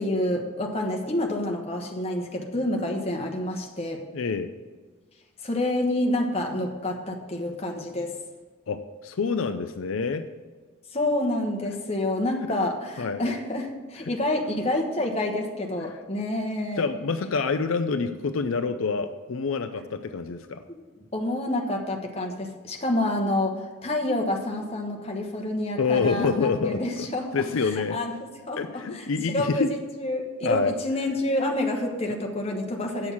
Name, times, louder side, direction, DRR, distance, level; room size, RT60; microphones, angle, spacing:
voice 1, 0.0-4.1 5.4-8.2 10.9-16.8 20.7-20.8 21.1-28.1 28.5-33.1, left 1 dB, 30° left, 2 dB, 1.1 m, -28 dB
voice 2, 4.1-4.5 8.7-10.2 12.4-12.5 13.0-13.2 15.8-16.0 16.8-20.6 25.8-26.8 27.3-28.0 28.6-29.7 30.4-30.7, left 4 dB, 75° left, 9 dB, 0.5 m, -27 dB
8.7 x 6.3 x 7.1 m, 1.4 s
head